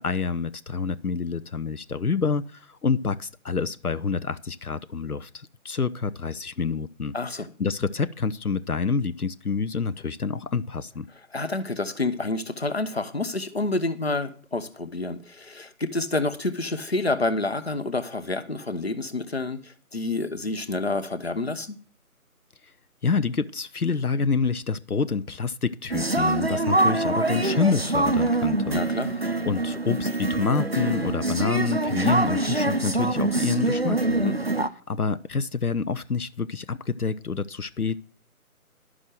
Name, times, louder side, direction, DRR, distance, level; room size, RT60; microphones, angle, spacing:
voice 1, 0.0-7.2 7.6-11.1 23.0-28.8 29.5-34.0 34.9-38.0, left 5 dB, 80° left, 0.8 m, -27 dB
voice 2, 7.1-7.5 11.3-21.8 28.7-29.1 34.1-34.4, left 2 dB, 45° left, 1.0 m, -28 dB
sound 1, 25.9-34.7, right 2 dB, 45° right, 0.6 m, -24 dB
11.5 x 6.2 x 7.7 m
figure-of-eight pair, 165°, 44 cm